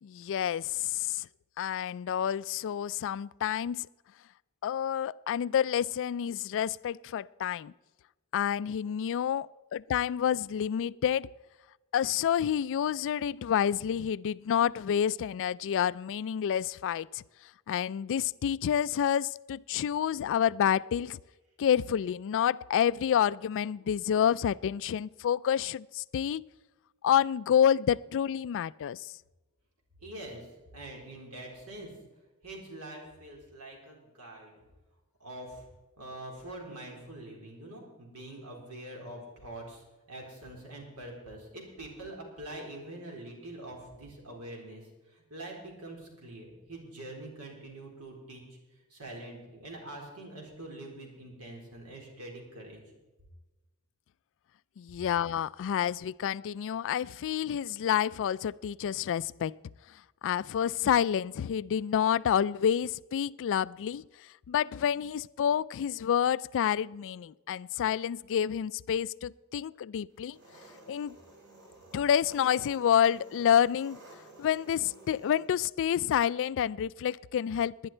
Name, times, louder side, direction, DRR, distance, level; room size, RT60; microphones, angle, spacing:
voice 1, 0.0-1.3 1.6-3.9 4.6-7.7 8.3-11.3 11.9-17.2 17.7-21.2 21.6-26.4 27.0-29.1 54.8-59.5 60.2-64.0 64.5-70.4 70.9-71.2 71.9-74.0 74.4-77.9, left 9 dB, 60° left, 0.3 m, -28 dB
voice 2, 30.0-30.5 30.7-31.9 32.4-34.5 35.2-35.7 36.0-48.4 48.9-52.8, right 1 dB, 80° right, 4.2 m, -44 dB
Engine, 70.2-75.5, right 2 dB, 55° right, 3.4 m, -53 dB
19.0 x 10.5 x 4.4 m
head